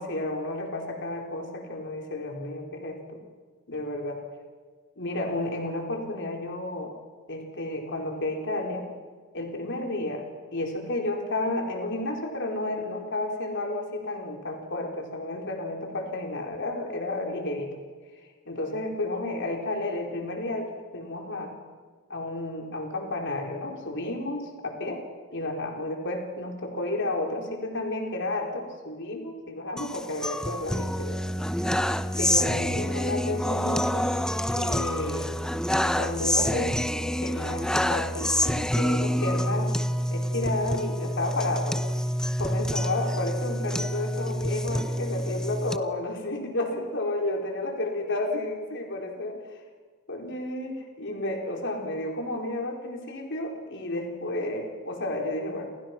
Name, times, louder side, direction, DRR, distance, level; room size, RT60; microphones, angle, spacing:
voice 1, 0.0-3.2 3.7-4.2 5.0-6.9 7.3-8.9 9.3-10.2 10.5-17.8 18.5-21.5 22.1-25.0 25.3-31.3 32.2-34.0 34.6-35.4 35.8-36.8 37.2-41.8 42.4-49.6 50.1-55.7, left 2 dB, 55° left, 2 dB, 4.4 m, -32 dB
sound 1, 29.8-45.8, equal, 5° left, 0.8 m, -27 dB
30.0 x 28.0 x 6.1 m, 1.5 s
head